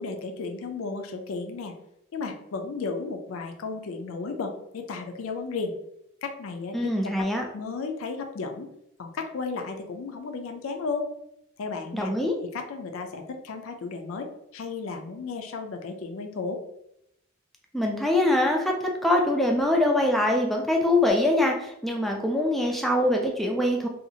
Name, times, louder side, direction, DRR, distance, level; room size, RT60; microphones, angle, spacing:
voice 1, 0.0-1.7 2.1-5.7 6.2-7.3 7.5-8.7 9.0-11.1 11.6-12.1 12.5-16.6, left 4 dB, 85° left, 4 dB, 0.4 m, -34 dB
voice 2, 6.7-7.5 11.9-12.4 17.7-23.9, left 1 dB, ahead, 1 dB, 0.3 m, -23 dB
2.8 x 2.4 x 2.7 m, 0.78 s
head